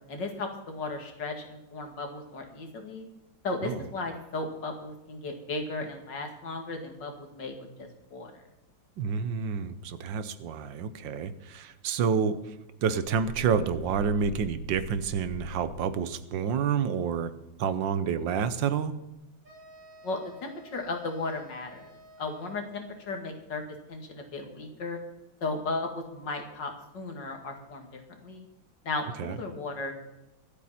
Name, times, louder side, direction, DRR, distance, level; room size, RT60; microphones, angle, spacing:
voice 1, 0.1-3.1 3.4-8.3 20.0-21.9 22.2-23.6 23.9-25.0 25.4-28.4 28.8-29.9, left 3 dB, 65° left, 4 dB, 2.7 m, -35 dB
voice 2, 9.0-12.4 12.8-17.3 17.6-18.9 29.2-29.3, right 6 dB, 75° right, 13 dB, 1.6 m, -28 dB
sound 1, 13.1-15.9, right 5 dB, 85° left, 3.3 m, -43 dB
sound 2, 19.4-23.1, right 1 dB, 40° right, 4.7 m, -52 dB
24.5 x 8.5 x 4.3 m, 0.95 s
omnidirectional pair, 2.1 m